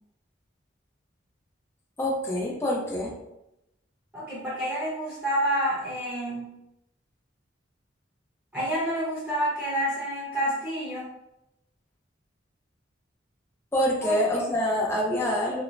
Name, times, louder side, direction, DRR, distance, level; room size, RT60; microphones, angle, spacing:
voice 1, 2.0-3.2 13.7-15.6, left 1 dB, 15° left, -3 dB, 0.5 m, -26 dB
voice 2, 4.1-6.5 8.5-11.1 14.0-14.4, equal, 10° right, -10 dB, 0.8 m, -28 dB
3.1 x 2.0 x 2.5 m, 0.87 s
head